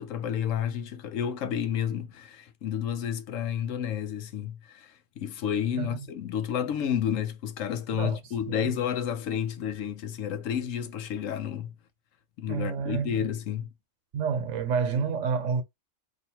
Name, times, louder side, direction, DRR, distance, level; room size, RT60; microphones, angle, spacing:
voice 1, 0.0-11.7 12.4-13.7, left 9 dB, 90° left, 1.0 m, -31 dB
voice 2, 12.5-13.4 14.1-15.6, right 6 dB, 70° right, 1.1 m, -29 dB
2.8 x 2.6 x 4.2 m
omnidirectional pair, 1.3 m